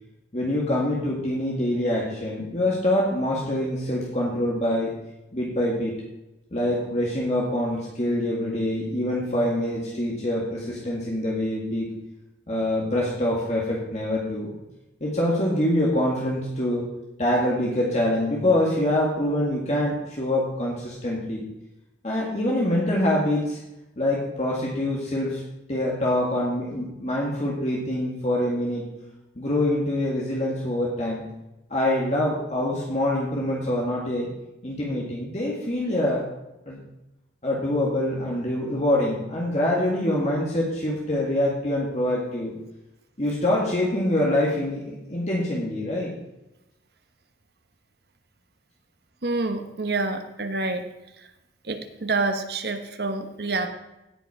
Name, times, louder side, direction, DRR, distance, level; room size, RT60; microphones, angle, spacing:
voice 1, 0.3-4.9 5.3-5.9 6.5-11.9 12.5-14.5 15.0-16.9 17.2-21.4 22.0-23.6 24.0-25.4 25.7-28.9 29.4-31.2 31.7-34.3 34.6-36.2 36.7-36.8 37.4-42.6 43.2-46.1, left 1 dB, 40° left, -4 dB, 1.9 m, -25 dB
voice 2, 49.2-50.9 51.6-53.7, right 3 dB, 60° right, 7 dB, 1.1 m, -27 dB
16.5 x 5.8 x 4.8 m, 0.94 s
head